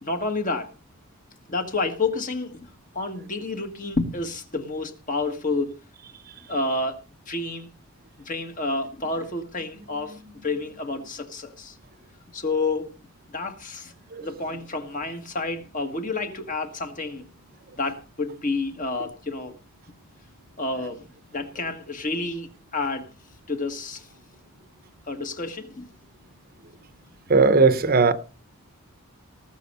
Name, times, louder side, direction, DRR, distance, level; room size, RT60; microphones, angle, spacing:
voice 1, 0.0-0.7 1.5-2.7 2.9-5.8 6.5-7.0 7.3-7.7 8.2-11.7 12.3-13.0 13.3-13.9 14.2-17.3 17.8-19.6 20.6-23.1 23.5-24.1 25.1-25.9, left 3 dB, 35° left, 1.6 m, -29 dB
voice 2, 27.3-28.1, right 4 dB, 45° right, 0.8 m, -17 dB
19.0 x 6.3 x 5.5 m
head